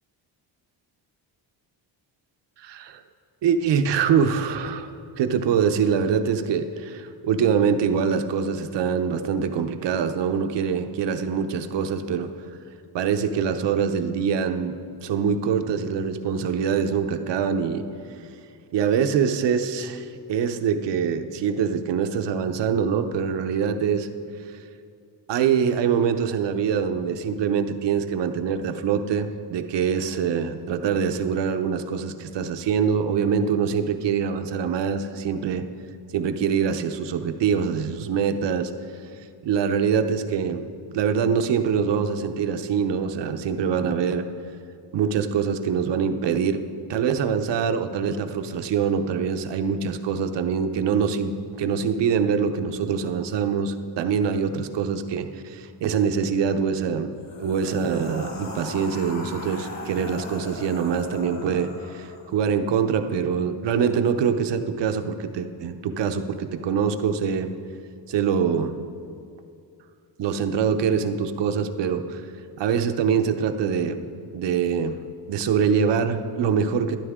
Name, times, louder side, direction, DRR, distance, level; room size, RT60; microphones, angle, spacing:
voice 1, 2.6-3.0 3.4-12.3 12.9-14.7 15.0-17.8 18.7-24.1 25.3-35.7 36.1-38.7 39.4-40.6 40.9-44.3 44.9-46.6 46.9-67.5 68.1-68.7 70.2-72.2 72.6-74.0 74.3-75.0 75.3-77.0, right 7 dB, 70° right, 8 dB, 0.8 m, -24 dB
sound 1, 57.2-62.4, left 2 dB, 40° left, 2.1 m, -38 dB
13.5 x 12.0 x 3.6 m, 2.5 s
cardioid pair, 135°, 44 cm